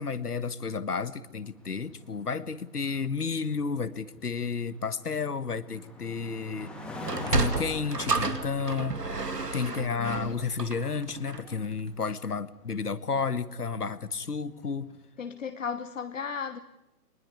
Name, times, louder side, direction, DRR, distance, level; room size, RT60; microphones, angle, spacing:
voice 1, 0.0-6.7 7.0-9.0 9.5-14.9, left 5 dB, 70° left, 1.5 m, -32 dB
sound 1, 1.3-14.8, left 1 dB, ahead, 2.4 m, -46 dB
Sliding door, 7.0-11.6, right 3 dB, 80° right, 2.4 m, -31 dB
voice 2, 9.7-10.4 15.2-16.6, left 6 dB, 50° left, 1.2 m, -36 dB
23.5 x 20.5 x 9.7 m
figure-of-eight pair, 130°, 48 cm